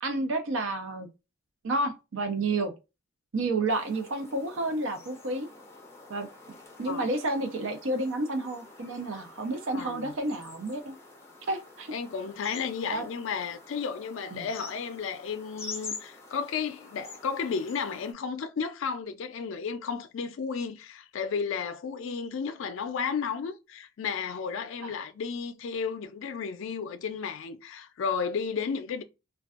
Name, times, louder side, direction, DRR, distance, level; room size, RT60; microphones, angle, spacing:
voice 1, 0.0-1.1 1.6-2.7 3.3-5.5 6.1-6.3 6.8-10.9 11.5-11.9 12.9-13.1 14.3-14.5 24.8-24.9, right 2 dB, 75° right, 0.6 m, -30 dB
sound 1, 3.7-18.1, left 4 dB, 10° left, 0.5 m, -47 dB
voice 2, 9.7-10.1 11.9-29.0, left 6 dB, 70° left, 0.4 m, -33 dB
2.5 x 2.2 x 2.3 m
head